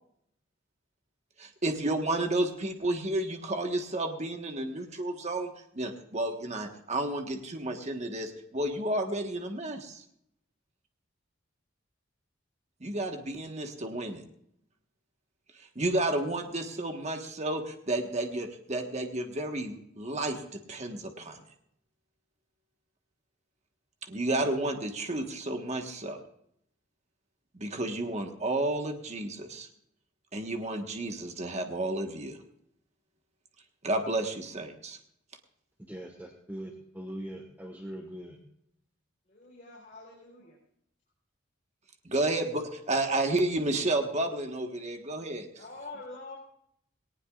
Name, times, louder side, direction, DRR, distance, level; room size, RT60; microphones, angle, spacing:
voice 1, 1.4-10.0 12.8-14.2 15.6-21.4 24.0-26.2 27.5-29.7 30.3-32.4 33.8-35.0 42.0-45.5, right 2 dB, 35° right, 4 dB, 1.4 m, -31 dB
voice 2, 35.9-38.4, right 1 dB, 10° right, 2 dB, 1.4 m, -41 dB
voice 3, 39.3-40.6 45.5-46.4, left 3 dB, 40° left, -5 dB, 4.2 m, -45 dB
19.0 x 18.5 x 2.5 m, 0.73 s
head